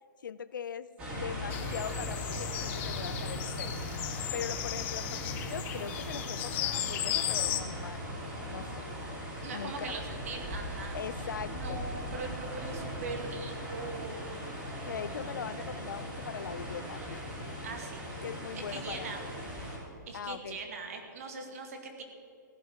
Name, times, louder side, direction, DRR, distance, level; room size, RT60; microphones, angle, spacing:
voice 1, 0.2-0.9 1.1-3.7 4.3-8.1 8.5-8.9 9.5-9.9 10.9-11.9 14.9-17.2 18.2-19.4 20.1-20.6, left 7 dB, 85° left, 15 dB, 0.7 m, -41 dB
sound 1, 1.0-19.8, equal, 15° right, 2.8 m, -39 dB
sound 2, 1.5-7.6, left 12 dB, 15° left, 0.6 m, -35 dB
voice 2, 9.4-11.0 11.5-14.4 17.6-18.0 18.5-19.2 20.1-22.0, right 4 dB, 50° right, 4 dB, 2.2 m, -41 dB
16.0 x 11.0 x 5.2 m, 2.5 s
hypercardioid pair, 170°, 10 cm